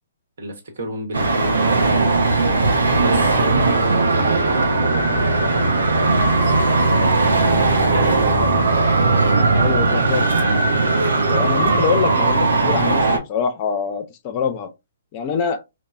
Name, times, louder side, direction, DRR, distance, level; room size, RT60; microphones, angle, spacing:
voice 1, 0.4-2.2 3.0-7.3 7.9-8.3, right 1 dB, 65° right, 1.0 m, -31 dB
Traffic noise roadway noise, 1.1-13.2, right 3 dB, 80° right, 0.6 m, -18 dB
voice 2, 9.5-10.3 11.3-14.7 15.1-15.6, left 6 dB, 35° left, 0.5 m, -24 dB
3.0 x 2.1 x 2.3 m
hypercardioid pair, 130°, 0 cm